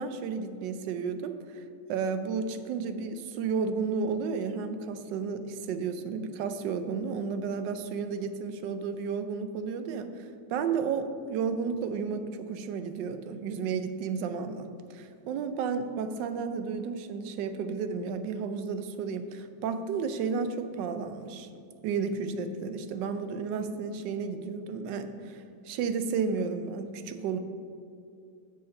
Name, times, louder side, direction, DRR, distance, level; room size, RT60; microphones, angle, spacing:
voice 1, 0.0-1.6 1.9-21.5 21.8-27.4, right 5 dB, 75° right, 9 dB, 1.2 m, -32 dB
6.8 x 6.5 x 5.2 m, 2.5 s
omnidirectional pair, 2.0 m